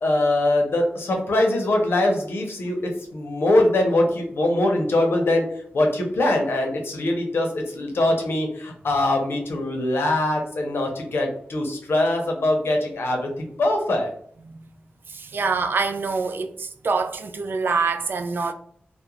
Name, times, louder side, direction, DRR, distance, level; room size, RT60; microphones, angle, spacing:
voice 1, 0.0-5.4 5.7-14.1, left 1 dB, 80° left, 0.7 m, -22 dB
voice 2, 15.1-18.5, right 4 dB, 65° right, 0.3 m, -25 dB
2.4 x 2.1 x 2.9 m
wide cardioid pair, 80°, 4 cm